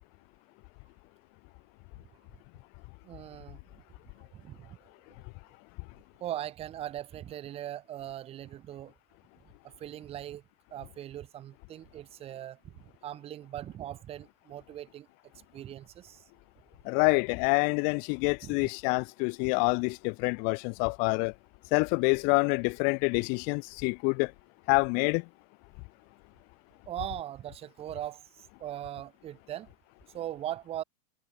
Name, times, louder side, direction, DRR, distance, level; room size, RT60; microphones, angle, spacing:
voice 1, 3.0-3.6 4.3-4.8 6.2-8.9 9.6-10.4 10.7-15.1 15.5-16.2 18.4-18.7 26.9-29.7 30.1-30.8, right 12 dB, 30° right, 0.6 m, -40 dB
voice 2, 16.8-21.3 21.7-24.3 24.7-25.2, left 36 dB, 45° left, 0.4 m, -27 dB
hypercardioid pair, 115°, 21 cm